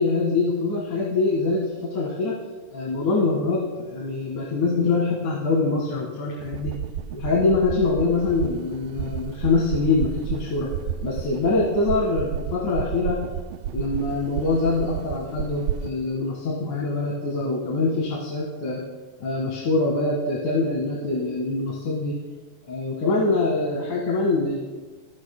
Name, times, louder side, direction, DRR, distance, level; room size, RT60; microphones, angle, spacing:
voice 1, 0.0-2.3 2.7-6.7 7.1-10.7 11.0-13.2 13.7-18.8 19.2-22.2 22.7-24.6, left 3 dB, 70° left, -3 dB, 3.2 m, -24 dB
sound 1, 6.4-15.9, right 10 dB, 85° right, 2.0 m, -32 dB
27.5 x 16.0 x 2.2 m, 1.4 s
omnidirectional pair, 3.7 m